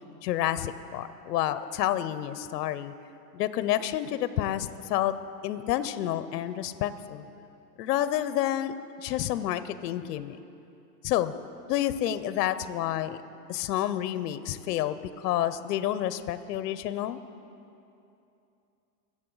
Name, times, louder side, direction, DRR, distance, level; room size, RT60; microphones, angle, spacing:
voice 1, 0.2-2.9 3.3-5.1 5.4-7.3 7.8-10.4 11.0-11.3 11.7-13.2 13.5-17.2, left 12 dB, 70° left, 13 dB, 0.7 m, -29 dB
22.0 x 7.6 x 3.9 m, 2.7 s
hypercardioid pair, 130°, 50 cm